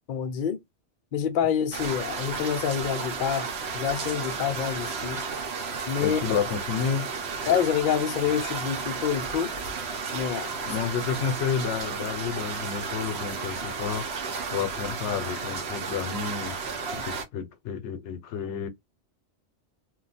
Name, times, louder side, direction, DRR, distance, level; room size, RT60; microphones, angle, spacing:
voice 1, 0.1-0.6 1.1-5.2 5.9-6.2 7.5-9.5 10.1-10.5, left 8 dB, 55° left, 0.6 m, -27 dB
sound 1, 1.7-17.3, right 5 dB, 65° right, 0.9 m, -33 dB
voice 2, 6.0-7.1 10.6-14.1 14.5-16.6 16.9-18.7, left 7 dB, 75° left, 0.9 m, -30 dB
2.4 x 2.2 x 4.0 m
omnidirectional pair, 1.2 m